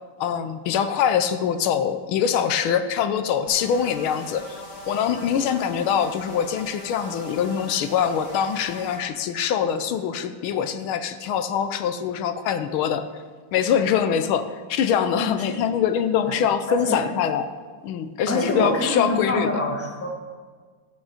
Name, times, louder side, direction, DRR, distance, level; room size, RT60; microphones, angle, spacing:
voice 1, 0.2-13.0 13.5-17.5 17.8-19.6, left 8 dB, 85° left, 10 dB, 1.5 m, -24 dB
sound 1, 3.5-9.0, left 1 dB, 60° left, 3.5 m, -40 dB
voice 2, 18.3-20.1, left 1 dB, 5° left, -1 dB, 1.4 m, -25 dB
12.5 x 8.8 x 5.0 m, 1.5 s
omnidirectional pair, 2.3 m